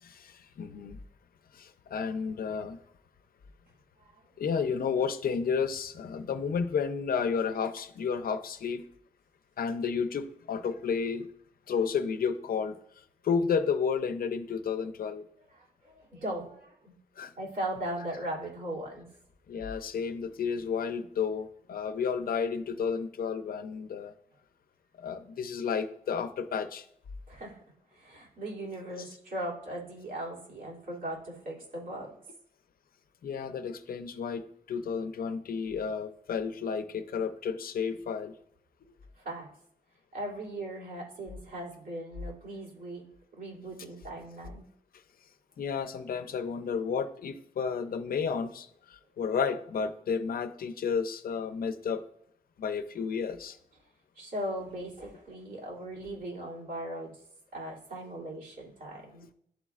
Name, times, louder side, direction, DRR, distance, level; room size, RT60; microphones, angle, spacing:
voice 1, 0.0-1.0 1.5-2.8 4.4-8.8 9.6-11.3 11.7-12.7 13.2-15.2 17.2-17.3 19.5-24.1 25.0-26.8 33.2-38.3 45.6-52.0 52.6-53.6, left 6 dB, 75° left, 10 dB, 0.5 m, -32 dB
voice 2, 15.5-16.9 17.4-19.1 27.3-27.6 27.9-32.1 39.2-39.5 40.1-43.0 43.4-44.6 53.0-53.1 54.1-57.2 57.5-59.3, right 1 dB, 70° right, -4 dB, 2.6 m, -38 dB
11.5 x 4.2 x 2.4 m, 0.68 s
wide cardioid pair, 170°, 15 cm